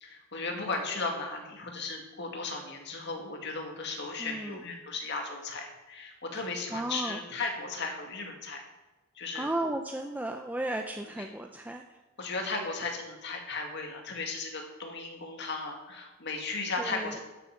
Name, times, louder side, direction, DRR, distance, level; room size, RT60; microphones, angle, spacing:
voice 1, 0.0-8.6 9.1-9.5 11.2-11.3 12.2-17.2, left 3 dB, 55° left, 2 dB, 2.1 m, -36 dB
voice 2, 4.2-4.6 6.7-7.2 9.3-11.8 16.8-17.2, right 1 dB, 10° right, 4 dB, 0.5 m, -34 dB
12.5 x 8.2 x 5.8 m, 1.1 s
head